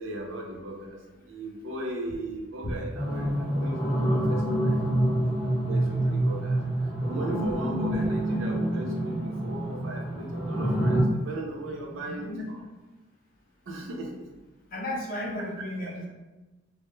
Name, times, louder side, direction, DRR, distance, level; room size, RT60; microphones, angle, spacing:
voice 1, 0.0-6.6 7.0-12.3 13.7-14.2, right 1 dB, 80° right, 0 dB, 0.5 m, -37 dB
sound 1, 2.9-11.0, right 1 dB, 5° right, 0.7 m, -27 dB
voice 2, 11.7-12.5 14.7-16.1, left 1 dB, 45° left, -1 dB, 0.5 m, -35 dB
2.2 x 2.0 x 3.0 m, 1.1 s
head